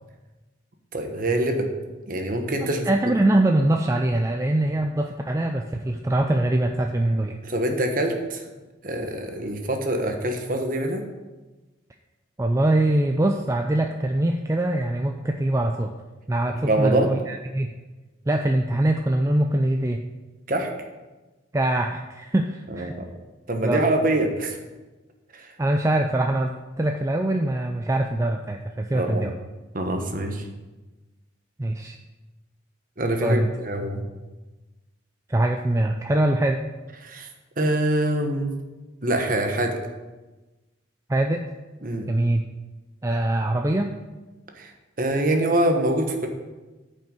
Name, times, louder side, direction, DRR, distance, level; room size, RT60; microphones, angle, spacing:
voice 1, 0.9-1.7 2.1-2.9 7.4-8.4 8.8-11.0 16.7-17.1 20.5-20.7 22.7-23.1 23.5-24.6 25.3-25.5 28.9-29.3 29.7-30.5 33.0-34.0 37.0-37.3 37.6-38.5 39.0-39.8 41.8-42.1 44.5-44.7 45.0-46.3, right 1 dB, 45° right, 4 dB, 1.2 m, -24 dB
voice 2, 2.6-7.4 12.4-15.9 16.3-17.7 18.3-20.0 21.5-22.9 23.6-23.8 25.6-26.5 26.8-29.3 31.6-32.0 33.2-33.5 35.3-36.6 41.1-41.4 42.1-42.4 43.0-43.9, right 1 dB, 15° right, 3 dB, 0.4 m, -23 dB
9.1 x 5.5 x 6.6 m, 1.2 s
head